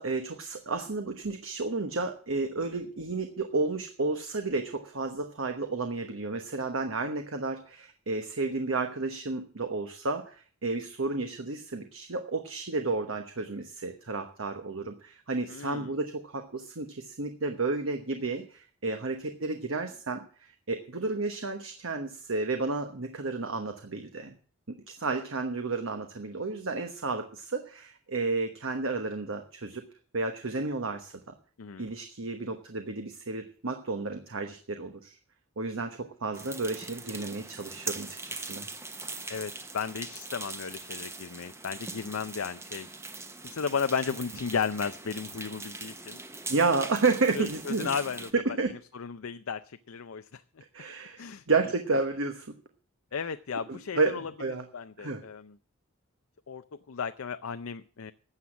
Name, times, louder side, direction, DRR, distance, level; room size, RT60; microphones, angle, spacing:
voice 1, 0.0-24.3 24.7-29.8 30.1-31.3 31.8-35.1 35.6-38.7 46.5-47.9 48.4-48.7 50.7-52.5 53.7-54.7 55.0-55.2, right 3 dB, 70° right, 6 dB, 1.1 m, -32 dB
voice 2, 15.5-15.9 31.6-31.9 39.3-42.9 43.4-46.2 47.3-48.3 48.7-50.4 51.2-51.4 53.1-54.3 54.7-55.6 56.5-58.1, left 6 dB, 75° left, 10 dB, 0.6 m, -34 dB
sound 1, 36.3-48.3, right 3 dB, 15° right, 0.9 m, -41 dB
13.0 x 8.0 x 7.3 m, 0.43 s
head